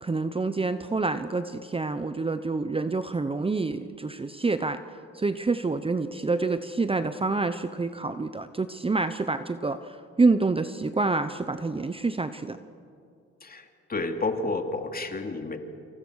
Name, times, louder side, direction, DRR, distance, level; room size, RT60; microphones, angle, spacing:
voice 1, 0.0-4.8 5.1-12.6, right 3 dB, 20° right, 11 dB, 0.9 m, -27 dB
voice 2, 13.4-15.6, left 3 dB, 30° left, 5 dB, 2.8 m, -30 dB
28.0 x 27.0 x 6.5 m, 2.5 s
cardioid pair, 90°, 30 cm